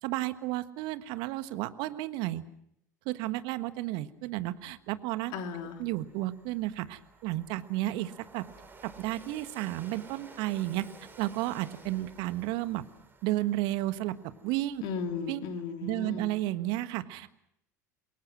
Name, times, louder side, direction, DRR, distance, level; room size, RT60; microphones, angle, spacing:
voice 1, 0.0-2.4 3.0-5.3 5.8-8.4 8.8-10.9 11.2-12.8 13.2-14.2 14.4-14.8 15.3-15.4 15.8-17.3, right 16 dB, 55° right, 12 dB, 1.4 m, -32 dB
voice 2, 5.3-5.8 14.8-16.3, left 5 dB, 55° left, 4 dB, 3.4 m, -36 dB
Train, 5.3-15.6, right 4 dB, 20° right, 5.7 m, -54 dB
28.0 x 22.5 x 6.1 m, 0.74 s
figure-of-eight pair, 75°, 10 cm